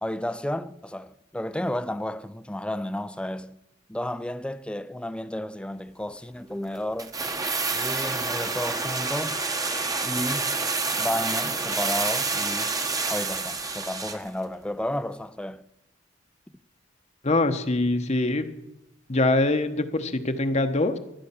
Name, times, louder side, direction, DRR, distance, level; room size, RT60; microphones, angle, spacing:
voice 1, 0.0-3.6 3.9-7.1 7.7-9.4 10.0-10.5 11.0-12.7 13.1-15.6, left 1 dB, 5° left, 0.5 m, -32 dB
sound 1, 7.0-14.3 14.5-14.6, right 3 dB, 20° right, 1.1 m, -28 dB
voice 2, 17.2-18.5 19.1-21.0, left 2 dB, 35° left, 1.0 m, -23 dB
14.5 x 11.5 x 7.0 m
head